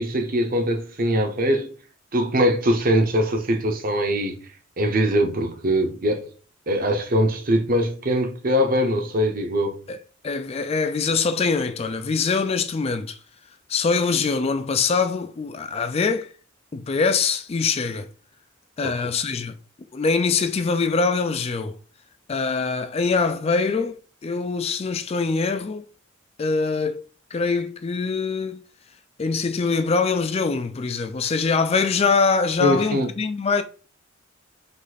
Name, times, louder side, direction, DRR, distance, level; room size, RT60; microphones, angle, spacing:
voice 1, 0.0-1.7 2.1-4.4 4.8-6.3 6.7-9.8 18.8-18.9 32.6-33.1, equal, 45° right, 0.8 m, -22 dB
voice 2, 10.2-13.2 13.7-16.3 16.7-18.1 18.8-19.5 19.9-21.7 22.3-24.0 24.2-25.9 26.4-27.0 27.3-28.6 29.2-33.6, left 4 dB, 30° left, 0.4 m, -23 dB
5.1 x 2.5 x 4.1 m
head